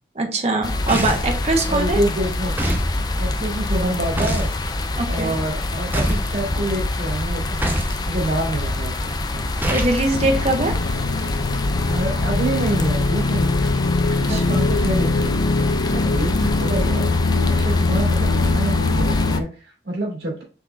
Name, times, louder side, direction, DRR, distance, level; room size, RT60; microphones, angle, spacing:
voice 1, 0.1-2.0 4.9-5.4 9.7-10.7 14.3-14.6, right 2 dB, 40° right, 3 dB, 1.0 m, -22 dB
sound 1, 0.6-19.4, left 2 dB, 25° left, 0.4 m, -25 dB
sound 2, 0.9-1.4 2.6-2.9 4.2-4.5 5.9-6.3 7.6-8.0 9.6-10.0, right 1 dB, 10° right, 0.7 m, -23 dB
voice 2, 1.7-2.5 3.1-4.5 5.1-7.7 8.0-9.5 11.8-13.6 14.2-15.4 15.9-17.1 17.4-20.4, right 1 dB, 75° right, -1 dB, 2.3 m, -27 dB
sound 3, 10.1-19.4, left 3 dB, 85° left, 0.5 m, -22 dB
5.9 x 3.5 x 2.6 m, 0.37 s
head